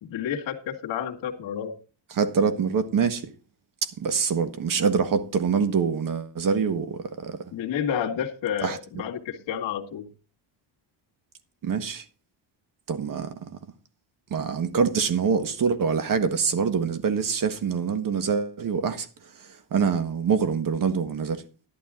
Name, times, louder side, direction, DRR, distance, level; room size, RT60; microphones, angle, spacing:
voice 1, 0.0-1.8 7.5-10.1, left 8 dB, 70° left, 2.2 m, -30 dB
voice 2, 2.1-3.3 3.8-7.4 8.6-8.8 11.6-12.0 12.9-13.5 14.3-19.1 19.7-21.4, right 6 dB, 45° right, 1.6 m, -25 dB
11.5 x 11.5 x 3.8 m
cardioid pair, 140°, 47 cm